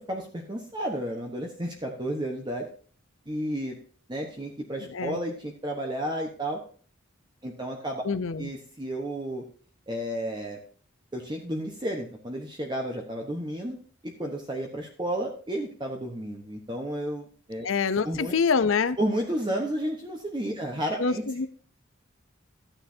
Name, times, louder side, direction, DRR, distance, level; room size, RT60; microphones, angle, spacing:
voice 1, 0.1-2.7 3.3-3.8 4.1-6.6 7.4-8.0 8.4-9.4 9.9-10.6 11.1-13.8 14.0-17.7 18.0-18.3 19.0-21.2, right 1 dB, 20° right, 2 dB, 1.1 m, -32 dB
voice 2, 8.0-8.5 17.6-19.0 21.0-21.5, left 5 dB, 75° left, 13 dB, 0.6 m, -26 dB
13.5 x 9.0 x 2.7 m, 0.43 s
head